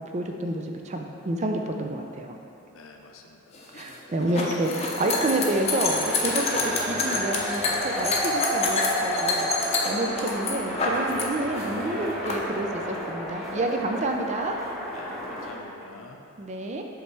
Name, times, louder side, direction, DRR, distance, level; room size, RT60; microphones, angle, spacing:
voice 1, 0.0-2.3 3.7-9.5 9.9-14.6 16.4-16.8, right 1 dB, 30° right, 3 dB, 0.4 m, -29 dB
voice 2, 2.7-3.4 14.9-16.2, left 3 dB, 65° left, 3 dB, 0.6 m, -47 dB
sound 1, 3.5-11.2 11.5-12.3, left 3 dB, 30° left, 0.7 m, -27 dB
sound 2, 4.9-15.5, equal, ahead, 1.0 m, -32 dB
7.8 x 3.3 x 4.7 m, 2.7 s
head